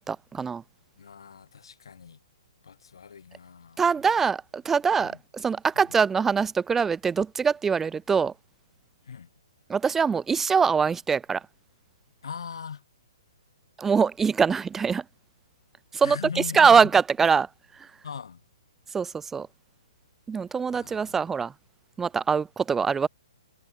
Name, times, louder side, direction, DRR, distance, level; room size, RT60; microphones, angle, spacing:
voice 1, 0.1-0.6 3.8-8.3 9.7-11.4 13.8-15.0 15.9-17.5 17.8-17.9 18.9-19.5 20.3-21.5 22.0-23.1, right 6 dB, 10° right, 0.5 m, -23 dB
voice 2, 1.0-2.2 2.6-3.8 5.0-5.2 9.0-9.3 12.2-12.8 16.0-16.9 18.0-18.4 20.7-21.1, left 6 dB, 70° left, 1.3 m, -40 dB
hypercardioid pair, 130°, 3 cm